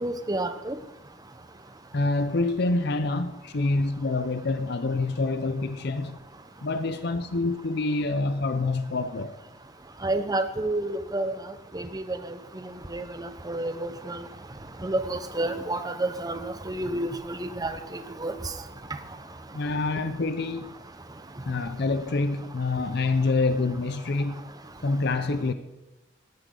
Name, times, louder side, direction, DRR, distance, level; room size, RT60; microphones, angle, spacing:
voice 1, 0.0-0.7 10.0-11.3 11.7-12.2 12.9-14.2 14.8-18.3, right 2 dB, 20° right, 1.0 m, -30 dB
voice 2, 1.9-6.2 6.6-9.4 19.5-20.7 21.5-24.5 24.8-25.5, left 3 dB, 60° left, 0.7 m, -26 dB
17.5 x 13.0 x 3.9 m
head